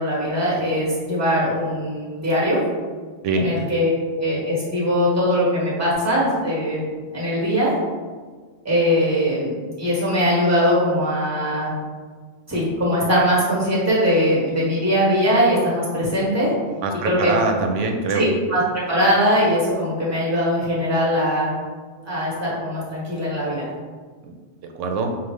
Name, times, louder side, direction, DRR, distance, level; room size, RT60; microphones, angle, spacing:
voice 1, 0.0-2.6 3.3-6.8 7.1-7.8 8.6-9.5 9.8-11.7 12.5-16.5 17.0-17.3 18.1-18.6 18.9-21.5 22.0-23.6, equal, 15° right, -6 dB, 1.3 m, -21 dB
voice 2, 16.8-18.3 24.2-24.3 24.6-25.2, right 3 dB, 85° right, 4 dB, 0.9 m, -23 dB
5.2 x 2.4 x 3.2 m, 1.5 s
omnidirectional pair, 1.2 m